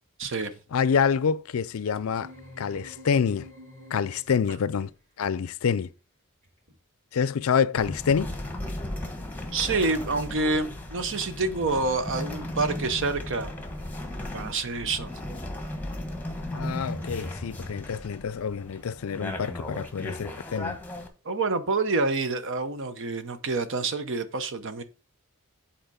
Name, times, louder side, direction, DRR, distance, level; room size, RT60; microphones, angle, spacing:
voice 1, 0.2-0.5 9.5-13.5 14.3-15.1 21.2-24.8, right 3 dB, 60° right, 0.8 m, -27 dB
voice 2, 0.7-2.3 2.6-3.5 3.9-4.9 5.2-5.9 7.1-8.3 16.5-20.8, left 6 dB, 70° left, 0.4 m, -27 dB
sound 1, 2.0-4.6, left 1 dB, 45° right, 4.8 m, -48 dB
sound 2, 2.7-2.9 4.4-5.1 6.4-6.8 7.4-7.5 9.4-9.9 10.8-10.9, right 2 dB, 80° right, 3.4 m, -53 dB
sound 3, 7.8-21.1, left 1 dB, 10° left, 1.1 m, -36 dB
8.0 x 4.3 x 5.0 m
head